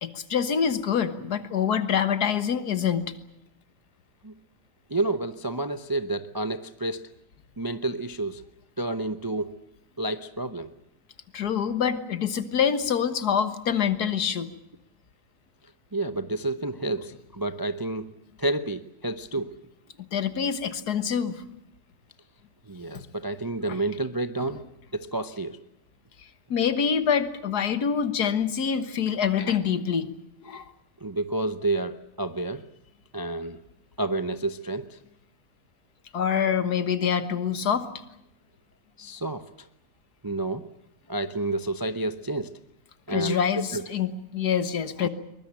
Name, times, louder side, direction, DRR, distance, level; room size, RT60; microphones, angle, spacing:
voice 1, 0.0-3.1 11.3-14.5 20.1-21.4 23.7-23.8 26.5-30.1 30.4-30.6 36.1-37.9 43.1-45.1, left 7 dB, 70° left, 11 dB, 1.8 m, -25 dB
voice 2, 4.9-7.1 7.6-8.4 8.8-9.6 10.0-10.7 15.9-18.1 18.4-19.6 22.7-24.6 24.9-25.6 31.0-32.6 33.1-33.6 34.0-35.0 39.0-39.4 40.2-40.7 41.1-42.5 43.1-43.4 43.7-43.8 45.0-45.1, right 2 dB, 25° right, 10 dB, 0.5 m, -30 dB
22.5 x 21.0 x 8.9 m, 0.83 s
omnidirectional pair, 1.8 m